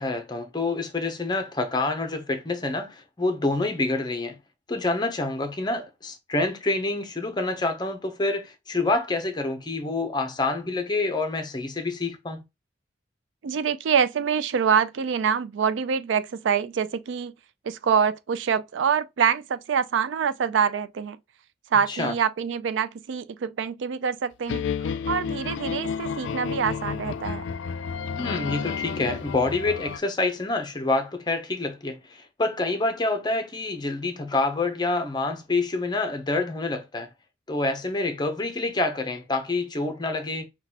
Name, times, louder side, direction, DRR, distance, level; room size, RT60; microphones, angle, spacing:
voice 1, 0.0-4.3 4.7-12.4 21.9-22.1 28.2-37.1 37.5-40.5, left 2 dB, 25° left, 0.6 m, -27 dB
voice 2, 13.4-17.3 17.6-21.2 21.7-24.7 25.1-27.4, right 7 dB, 85° right, 0.4 m, -25 dB
sound 1, 24.5-30.0, left 6 dB, 80° left, 0.4 m, -31 dB
5.8 x 2.3 x 2.8 m
head